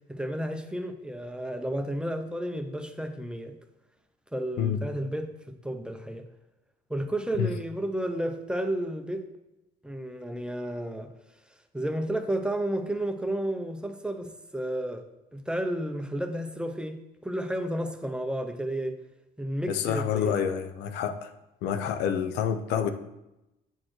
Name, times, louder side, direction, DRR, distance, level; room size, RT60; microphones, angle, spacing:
voice 1, 0.1-3.5 4.3-6.3 6.9-9.2 9.8-11.1 11.7-15.0 15.3-19.0 19.4-20.4, right 1 dB, 5° right, 6 dB, 0.5 m, -32 dB
voice 2, 19.7-21.3 21.6-22.9, left 8 dB, 85° left, 9 dB, 0.5 m, -28 dB
8.8 x 4.1 x 3.1 m, 0.93 s
cardioid pair, 110°, 17 cm